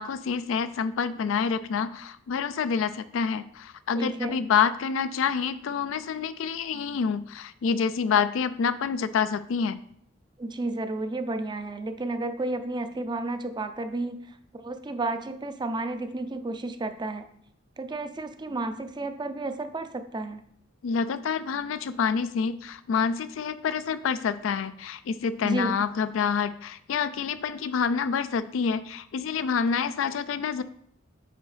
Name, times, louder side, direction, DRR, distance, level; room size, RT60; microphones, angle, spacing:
voice 1, 0.0-9.8 20.8-30.6, left 6 dB, 70° left, 13 dB, 0.4 m, -27 dB
voice 2, 4.0-4.4 10.4-17.2 17.8-20.4 25.4-25.8, right 2 dB, 20° right, 8 dB, 0.4 m, -32 dB
9.0 x 4.0 x 3.2 m, 0.67 s
head